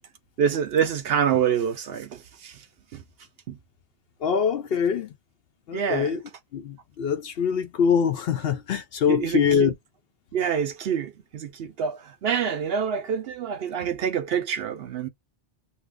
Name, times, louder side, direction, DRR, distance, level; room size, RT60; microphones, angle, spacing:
voice 1, 0.4-2.6 2.9-3.0 3.5-3.6 5.7-6.1 9.1-9.7 10.3-15.1, right 7 dB, 65° right, 0.7 m, -26 dB
voice 2, 4.2-5.1 5.7-6.2 6.5-9.7, left 7 dB, 65° left, 0.7 m, -24 dB
2.8 x 2.3 x 3.5 m
omnidirectional pair, 1.2 m